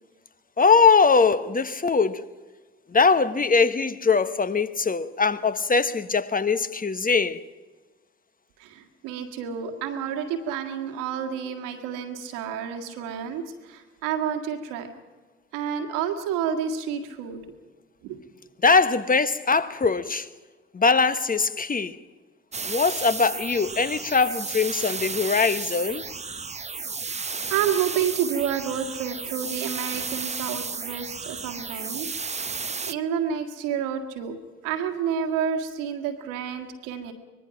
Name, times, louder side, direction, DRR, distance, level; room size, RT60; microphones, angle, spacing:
voice 1, 0.6-2.3 2.9-7.4 18.6-20.3 20.7-22.0 22.6-26.1, left 4 dB, 25° left, 1.2 m, -21 dB
voice 2, 8.6-14.9 15.5-17.4 18.0-18.2 27.0-32.1 32.3-34.4 34.6-37.1, right 8 dB, 75° right, 1.9 m, -29 dB
sound 1, 22.5-32.9, right 4 dB, 20° right, 0.8 m, -33 dB
24.5 x 20.5 x 5.9 m
figure-of-eight pair, 40°, 32 cm